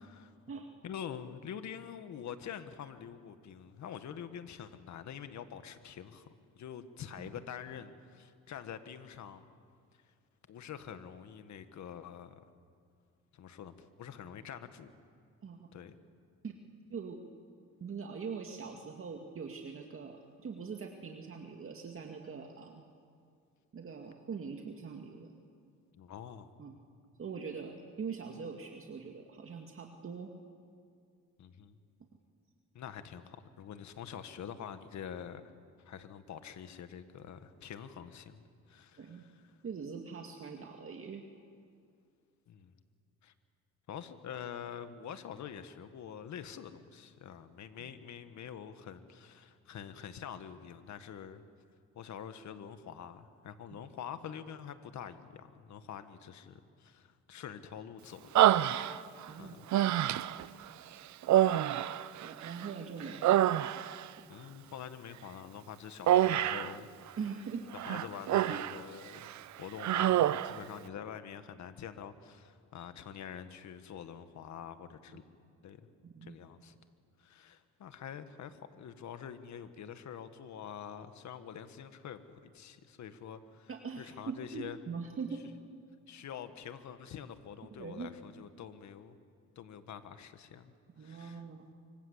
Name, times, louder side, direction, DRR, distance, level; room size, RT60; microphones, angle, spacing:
voice 1, 0.8-6.3 6.5-9.4 10.5-12.4 13.3-14.9 15.7-16.0 25.9-26.5 31.4-31.8 32.7-35.5 35.8-39.6 42.5-42.7 43.2-43.3 43.9-51.4 52.0-58.7 59.4-59.7 64.3-66.9 67.8-69.3 69.6-75.2 75.6-75.9 76.2-76.8 77.2-83.7 84.0-84.8 86.1-89.2 89.6-90.7 91.0-91.4, left 8 dB, 65° left, 10 dB, 1.7 m, -46 dB
voice 2, 16.9-17.2 17.8-22.8 23.7-25.3 26.6-26.7 27.2-30.3 39.0-39.2 39.6-41.2 47.8-47.9 59.3-59.6 62.2-63.6 67.2-67.7 68.5-68.6 75.1-75.2 76.0-76.4 83.7-85.4 87.7-88.1 91.0-91.6, right 5 dB, 45° right, 2 dB, 2.3 m, -42 dB
Human voice, 58.4-59.3 59.7-60.5 61.2-62.7 63.0-64.1 66.1-66.8 67.8-68.8 69.1-69.4 69.8-70.6, right 12 dB, 70° right, 0.8 m, -27 dB
25.5 x 24.5 x 8.2 m, 2.3 s
cardioid pair, 90°, 30 cm